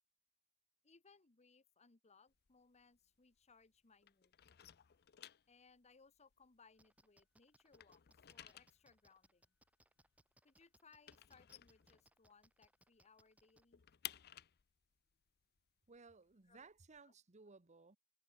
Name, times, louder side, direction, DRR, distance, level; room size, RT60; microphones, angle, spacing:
voice 1, 0.8-4.3 5.5-9.5 10.4-13.8 16.5-16.7 17.0-17.1, left 4 dB, 30° left, 1.1 m, -68 dB
sound 1, 2.3-3.7 4.0-7.2 7.5-12.5 12.9-13.0 13.3-17.0, left 12 dB, 50° left, 0.6 m, -56 dB
sound 2, 6.8-13.6, right 1 dB, 5° right, 1.8 m, -71 dB
voice 2, 15.9-18.0, right 4 dB, 35° right, 1.1 m, -60 dB
head